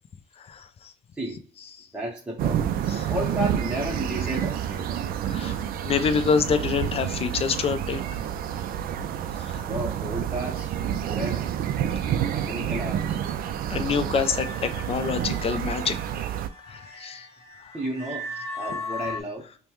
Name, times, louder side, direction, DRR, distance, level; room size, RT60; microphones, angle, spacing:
voice 1, 1.1-1.4 1.9-2.7 3.1-5.0 9.7-11.5 12.3-13.2 17.7-19.5, right 1 dB, 5° right, 0.9 m, -33 dB
sound 1, 2.4-16.5, right 9 dB, 60° right, 0.4 m, -29 dB
voice 2, 5.3-5.6 5.8-8.0 9.4-9.7 13.7-16.0 16.7-17.3 17.6-17.7, left 6 dB, 35° left, 0.5 m, -26 dB
sound 2, 14.2-19.2, left 2 dB, 20° left, 1.2 m, -38 dB
5.2 x 2.2 x 3.0 m
cardioid pair, 110°, 17 cm